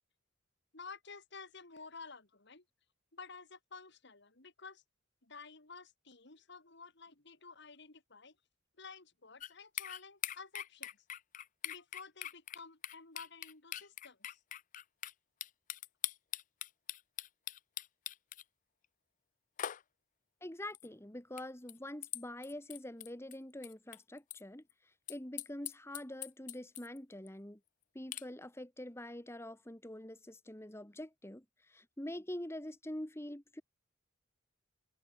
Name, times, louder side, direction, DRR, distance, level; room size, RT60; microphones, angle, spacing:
voice 1, 0.7-2.6 3.1-4.8 5.2-8.4 8.8-11.1 11.6-14.4, left 4 dB, 60° left, 2.9 m, -52 dB
sound 1, 9.4-9.5 9.8-15.1 15.4-18.4 19.6-19.8 20.7-20.9 21.4-21.5 21.7-21.8 22.0-23.3 23.6-24.4 24.7-24.8 25.1-27.0 27.3-27.4 28.1-28.2, left 12 dB, 40° left, 0.4 m, -42 dB
voice 2, 20.4-27.6 27.9-33.6, left 1 dB, 15° left, 1.7 m, -45 dB
head